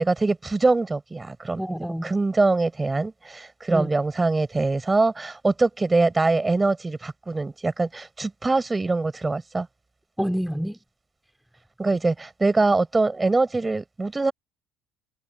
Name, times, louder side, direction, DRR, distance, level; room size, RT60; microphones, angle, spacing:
voice 1, 0.0-1.6 2.0-9.7 11.8-14.3, right 3 dB, 20° right, 5.7 m, -23 dB
voice 2, 1.6-2.2 3.7-3.9 10.2-10.8, equal, ahead, 3.5 m, -27 dB
supercardioid pair, 75°, 0 cm